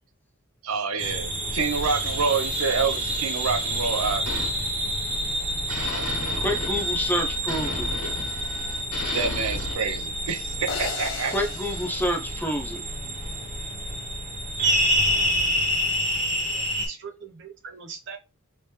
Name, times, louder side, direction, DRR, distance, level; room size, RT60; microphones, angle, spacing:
voice 1, 0.6-4.2 9.1-11.3, right 5 dB, 90° right, 0.6 m, -27 dB
sound 1, 1.0-16.9, equal, 35° right, 1.3 m, -28 dB
sound 2, 1.7-5.4 5.7-9.7, left 2 dB, 90° left, 1.5 m, -35 dB
voice 2, 6.4-7.9 11.3-12.8, equal, 10° left, 0.5 m, -28 dB
sound 3, 10.7-13.0, left 5 dB, 65° left, 0.5 m, -36 dB
voice 3, 16.5-18.2, right 6 dB, 55° right, 0.8 m, -41 dB
3.3 x 2.9 x 3.2 m
head